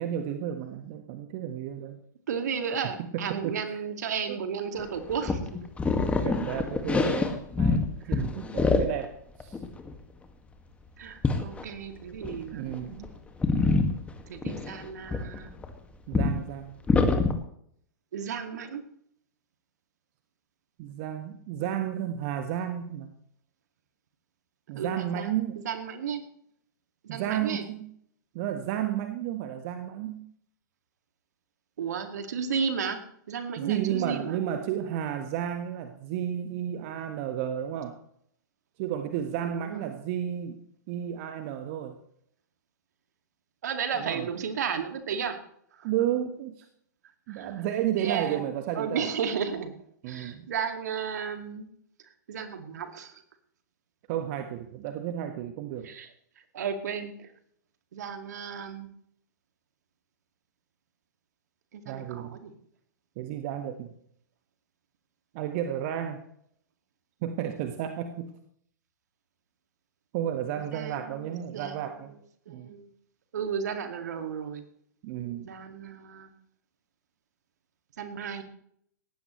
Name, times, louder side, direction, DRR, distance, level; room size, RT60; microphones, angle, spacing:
voice 1, 0.0-2.0 3.1-3.8 4.3-4.4 6.2-9.1 9.4-9.6 12.5-13.1 16.1-16.8 20.8-23.1 24.7-25.6 27.1-27.9 28.3-30.3 33.6-38.0 38.8-40.6 40.9-42.0 43.9-44.3 45.8-46.6 47.3-49.1 50.0-50.5 54.1-55.9 61.8-62.4 63.2-63.9 65.3-66.2 67.2-68.3 70.1-72.1 72.5-72.7 75.0-75.5, right 10 dB, 45° right, 6 dB, 1.5 m, -32 dB
voice 2, 2.3-5.6 7.0-7.1 8.0-8.2 11.0-12.8 14.3-15.5 18.1-18.8 24.7-25.4 25.6-26.2 27.1-27.6 31.8-33.0 33.3-34.4 39.4-39.8 43.6-45.4 45.7-45.9 47.3-47.7 48.0-48.4 48.7-49.7 50.1-51.6 52.3-53.1 55.8-56.1 56.5-57.3 57.9-58.9 61.7-62.5 70.6-72.0 72.5-72.9 73.3-74.6 75.4-76.3 78.0-78.4, right 6 dB, 65° right, 7 dB, 2.3 m, -34 dB
sound 1, 4.8-7.9 8.1-9.0 9.4-9.9 11.2-11.6 12.2-12.4 12.7-13.1 13.4-15.7 16.1-16.4 16.9-17.3, left 3 dB, 15° left, 1.9 m, -25 dB
19.0 x 15.5 x 3.2 m, 0.67 s
figure-of-eight pair, 105°, 10 cm